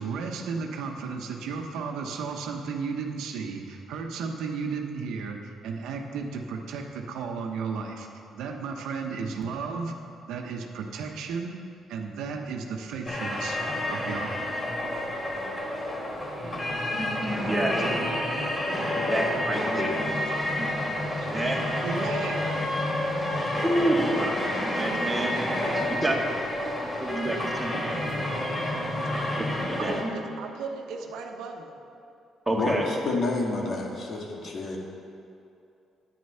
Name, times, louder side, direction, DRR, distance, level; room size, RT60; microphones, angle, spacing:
voice 1, 0.0-8.1 8.3-9.9 10.3-11.6 11.9-13.6 13.9-14.3 16.4-16.6 21.2-21.3 21.8-22.5 24.9-25.0 25.3-25.4 28.0-28.2 28.6-28.7 29.8-31.8, right 5 dB, 85° right, 3 dB, 1.0 m, -34 dB
sound 1, 13.1-30.0, left 1 dB, 25° left, 2.9 m, -29 dB
voice 2, 17.0-17.8 19.1-20.2 20.6-20.9 21.3-21.6 23.6-25.5 25.9-26.2 26.6-26.7 27.0-28.0 29.6-30.1 32.5-32.8, right 1 dB, 10° right, -2 dB, 1.9 m, -29 dB
voice 3, 32.6-34.8, left 2 dB, 55° left, 0 dB, 1.9 m, -29 dB
9.6 x 9.2 x 5.7 m, 2.7 s
cardioid pair, 90°, 0 cm